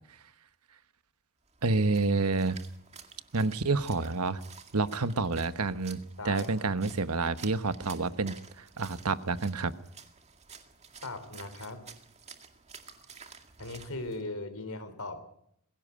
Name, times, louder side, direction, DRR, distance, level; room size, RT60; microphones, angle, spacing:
Splash splatter, 1.5-14.2, right 5 dB, 30° right, 2.1 m, -51 dB
voice 1, 1.6-2.6 3.3-4.4 4.7-6.0 6.2-9.7, right 3 dB, 85° right, 12 dB, 1.2 m, -28 dB
voice 2, 6.2-6.7 11.0-11.8 13.6-15.2, left 2 dB, 75° left, 10 dB, 3.7 m, -39 dB
22.0 x 16.5 x 9.8 m, 0.72 s
head